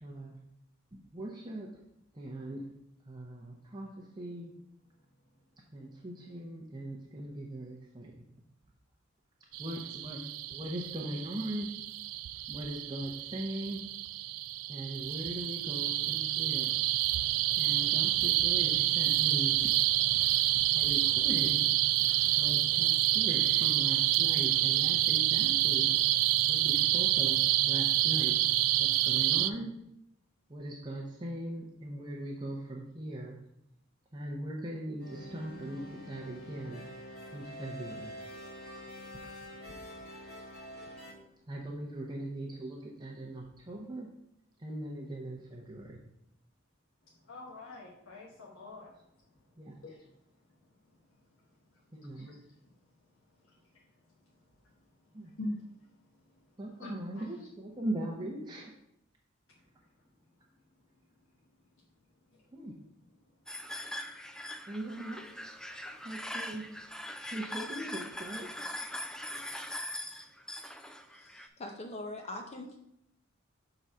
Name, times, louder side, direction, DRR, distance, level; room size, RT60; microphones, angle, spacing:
voice 1, 0.0-0.4 1.1-1.7 2.1-2.7 3.1-4.5 5.7-8.2 9.6-11.7 12.5-13.8 14.7-16.8 17.6-19.7 20.7-21.7 22.3-25.9 26.5-28.4 28.8-29.8 30.5-33.4 34.1-36.8 37.3-38.1 41.5-44.1 44.6-46.0 49.6-49.7 51.9-52.3 55.1-55.3 56.6-58.7 62.5-62.8 64.7-65.3 66.0-66.6 67.3-68.5, right 1 dB, 20° right, -2 dB, 0.7 m, -40 dB
sound 1, 9.5-29.5, right 14 dB, 85° right, 0.3 m, -28 dB
sound 2, 35.0-41.1, equal, 50° left, 2.7 m, -46 dB
voice 2, 47.3-48.9 49.8-50.1 52.1-52.4 55.4-55.6 56.8-57.2 62.3-62.4, left 1 dB, 80° left, -4 dB, 1.2 m, -43 dB
sound 3, 63.5-71.5, left 1 dB, 5° left, 0.3 m, -41 dB
voice 3, 71.2-72.8, left 1 dB, 30° left, 3 dB, 0.6 m, -42 dB
6.1 x 3.9 x 5.5 m, 0.78 s
head